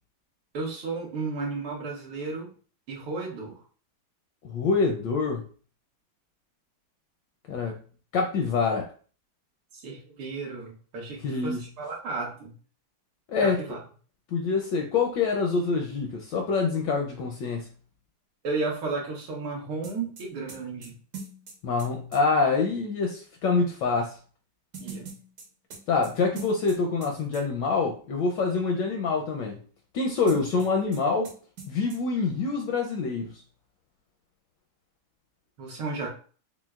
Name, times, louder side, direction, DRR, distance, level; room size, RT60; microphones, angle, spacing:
voice 1, 0.5-2.5 2.9-3.6 9.7-12.5 13.4-13.8 18.4-20.9 24.8-25.1 35.6-36.1, right 3 dB, 80° right, -2 dB, 2.0 m, -33 dB
voice 2, 4.4-5.5 7.5-7.8 8.1-8.9 11.2-11.7 13.3-13.6 14.3-17.7 21.6-24.2 25.9-29.6 29.9-31.3 31.7-33.4, left 4 dB, 75° left, 2 dB, 1.0 m, -26 dB
sound 1, 19.8-22.2 24.7-27.1 27.3-27.4 30.3-31.0 31.2-31.3 31.6-32.0, right 4 dB, 55° right, 1.2 m, -42 dB
5.9 x 2.0 x 2.3 m, 0.41 s
omnidirectional pair, 2.4 m